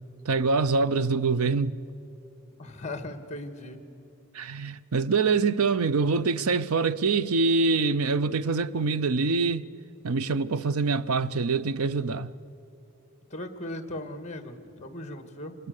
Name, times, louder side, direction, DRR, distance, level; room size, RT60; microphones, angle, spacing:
voice 1, 0.2-1.8 4.3-9.7 10.0-12.3, right 4 dB, 90° right, 0.6 m, -25 dB
voice 2, 1.0-1.4 2.6-3.8 13.3-15.5, left 1 dB, 30° left, 1.7 m, -38 dB
25.5 x 21.0 x 6.6 m
head